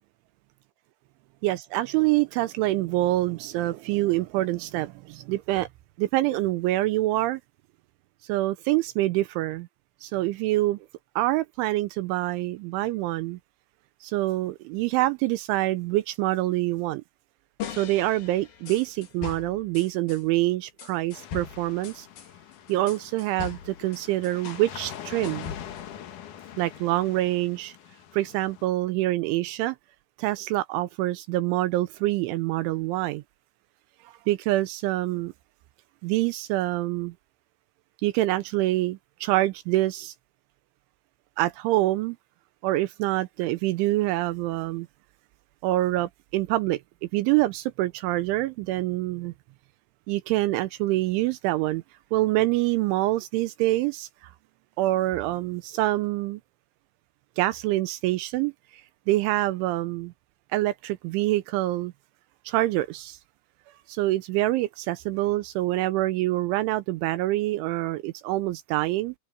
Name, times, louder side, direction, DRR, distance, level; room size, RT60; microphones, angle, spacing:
voice 1, 1.4-5.7 6.0-7.4 8.3-9.7 10.0-10.8 11.2-13.4 14.0-17.0 17.7-22.1 22.7-25.5 26.6-27.7 28.1-29.8 30.2-33.2 34.3-35.3 36.0-37.1 38.0-40.1 41.4-42.2 42.6-44.9 45.6-46.8 47.1-49.3 50.1-51.8 52.1-54.3 54.8-56.4 57.4-58.5 59.1-60.1 60.5-61.9 62.5-63.2 63.9-69.1, right 17 dB, 80° right, 3.0 m, -26 dB
sound 1, 17.6-20.2 20.8-24.7 24.9-25.9, left 7 dB, 50° left, 3.8 m, -39 dB
sound 2, 21.1-28.7, left 10 dB, 70° left, 2.0 m, -43 dB
open air
omnidirectional pair, 5.8 m